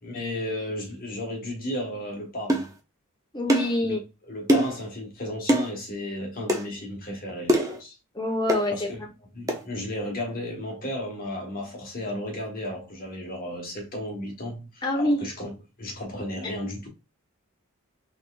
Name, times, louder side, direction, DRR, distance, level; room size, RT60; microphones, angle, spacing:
voice 1, 0.0-2.7 3.8-8.0 8.7-9.0 9.3-16.9, left 1 dB, 40° left, 1.4 m, -34 dB
sound 1, 2.5-2.7 3.5-3.8 4.5-4.8 5.5-5.7 6.5-6.7 7.5-7.8 8.5-8.7 9.5-9.6, right 1 dB, 15° right, 0.6 m, -22 dB
voice 2, 3.3-4.0 8.1-8.7 14.8-15.2, left 1 dB, 20° left, 0.9 m, -25 dB
4.0 x 3.4 x 2.4 m
head